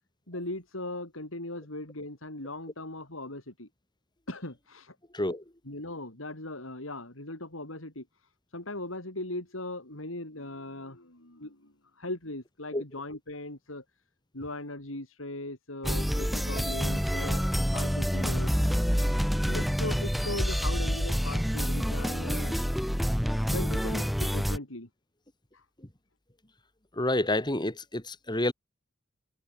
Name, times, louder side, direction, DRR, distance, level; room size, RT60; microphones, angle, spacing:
voice 1, 0.3-3.7 4.3-4.9 5.6-8.1 8.5-11.7 12.0-13.8 14.3-17.4 17.7-18.5 18.9-19.1 19.5-22.6 23.5-24.9, left 2 dB, 90° left, 5.9 m, -39 dB
sound 1, 15.8-24.6, equal, ahead, 2.6 m, -27 dB
voice 2, 27.0-28.5, left 1 dB, 20° left, 3.3 m, -28 dB
head